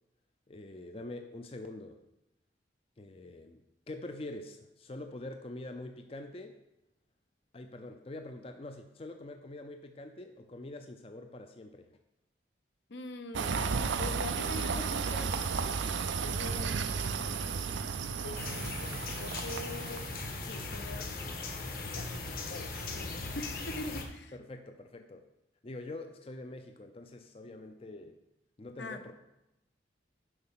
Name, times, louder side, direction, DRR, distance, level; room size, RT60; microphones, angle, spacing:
voice 1, 0.5-2.0 3.0-6.6 7.5-12.0 24.3-25.2 25.6-28.2 28.6-29.1, left 2 dB, 30° left, 6 dB, 0.5 m, -45 dB
voice 2, 12.9-17.6 18.2-20.1 20.4-21.1 21.8-22.2 22.5-24.3 28.8-29.0, left 2 dB, 70° left, 8 dB, 0.8 m, -44 dB
sound 1, 13.3-20.3, right 5 dB, 75° right, 0.5 m, -33 dB
sound 2, 18.3-24.0, left 3 dB, 50° left, 1.1 m, -39 dB
7.9 x 5.4 x 5.7 m, 0.91 s
head